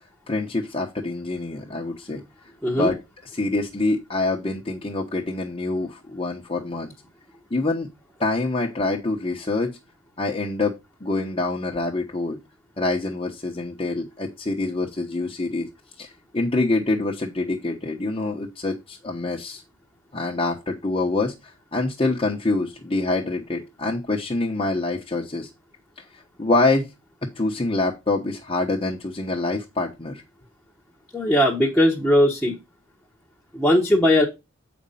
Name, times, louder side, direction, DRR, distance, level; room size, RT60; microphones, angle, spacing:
voice 1, 0.3-2.2 2.7-6.9 7.5-7.9 8.2-9.8 10.2-10.7 11.0-12.4 12.8-15.7 16.0-19.6 20.1-25.5 26.0-26.9 27.4-30.2, left 2 dB, 25° left, -2 dB, 1.0 m, -26 dB
voice 2, 31.1-32.6 33.5-34.2, left 1 dB, ahead, -4 dB, 1.1 m, -19 dB
7.9 x 5.2 x 5.6 m, 0.24 s
head